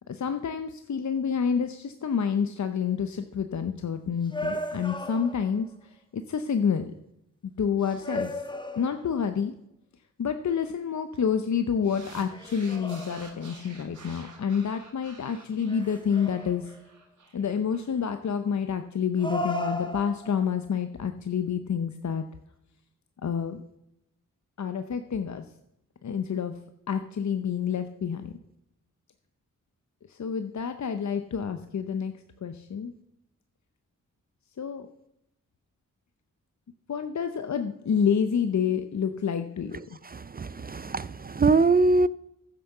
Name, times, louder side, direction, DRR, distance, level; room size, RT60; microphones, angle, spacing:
voice 1, 0.1-6.9 7.6-8.4 8.8-9.6 10.2-16.7 17.3-22.2 23.2-23.6 24.6-25.4 26.0-26.5 26.9-28.3 30.1-32.1 32.4-32.9 34.6-34.9 36.9-40.0, left 7 dB, 55° left, 0.8 m, -28 dB
sound 1, 4.3-5.7 7.8-9.3 12.3-13.6 15.7-16.8 19.2-20.5, equal, 15° left, 1.5 m, -35 dB
sound 2, 11.8-18.4, right 3 dB, 65° right, 2.8 m, -50 dB
voice 2, 40.1-42.1, right 3 dB, 30° right, 0.4 m, -23 dB
10.5 x 6.7 x 6.6 m
cardioid pair, 45°, 33 cm